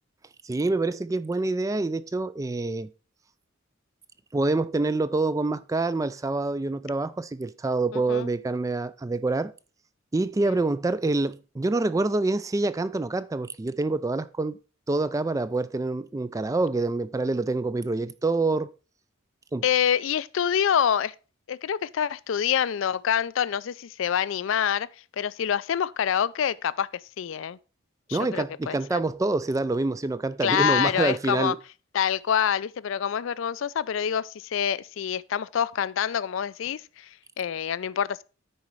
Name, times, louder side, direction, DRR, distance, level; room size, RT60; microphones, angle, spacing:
voice 1, 0.4-2.9 4.3-9.5 10.1-14.6 14.9-18.7 19.5-19.6 28.1-31.6, right 2 dB, 15° right, 0.3 m, -26 dB
voice 2, 7.9-8.3 10.5-10.6 19.6-21.1 21.5-24.9 25.1-27.6 28.1-29.0 30.4-31.5 31.9-38.2, left 8 dB, 70° left, 0.4 m, -26 dB
9.8 x 4.2 x 4.7 m
head